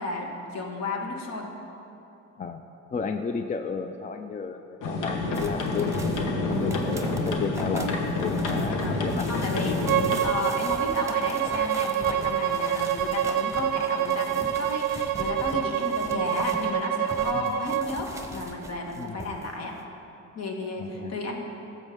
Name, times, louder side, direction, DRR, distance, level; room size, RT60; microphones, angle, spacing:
voice 1, 0.0-1.5 7.0-7.2 8.7-9.0 9.3-19.7 20.3-21.4, left 2 dB, 60° left, 1 dB, 1.5 m, -33 dB
voice 2, 2.9-6.1 6.5-9.3 17.3-17.5 19.0-19.2 20.8-21.1, left 5 dB, 25° left, 7 dB, 0.4 m, -33 dB
sound 1, 4.8-10.2, left 2 dB, 85° left, 1.1 m, -28 dB
sound 2, 5.3-16.7 17.1-19.5 19.8-19.9, right 2 dB, 10° right, 0.9 m, -40 dB
Bowed string instrument, 9.8-17.9, right 10 dB, 85° right, 0.5 m, -27 dB
13.5 x 7.3 x 3.5 m, 2.8 s
cardioid pair, 90°, 30 cm